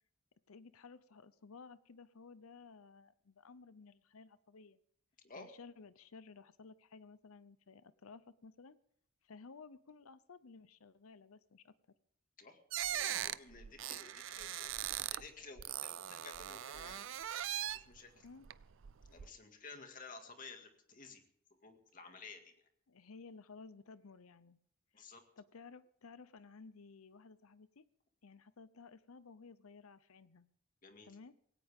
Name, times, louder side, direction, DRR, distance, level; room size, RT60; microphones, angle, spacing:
voice 1, 0.5-4.8 5.4-8.8 9.2-11.7 18.2-18.5 22.9-24.6 24.9-25.1 25.4-27.9 28.2-30.5 31.0-31.3, left 4 dB, 80° left, 16 dB, 0.7 m, -56 dB
sound 1, 12.7-15.3 15.6-18.0 18.4-19.3, right 12 dB, 60° right, 0.5 m, -40 dB
voice 2, 12.9-17.0 17.7-18.3 19.1-21.2 21.6-22.5 24.9-25.2 30.8-31.1, left 4 dB, 40° left, 5 dB, 2.1 m, -54 dB
18.0 x 17.0 x 3.7 m, 0.66 s
head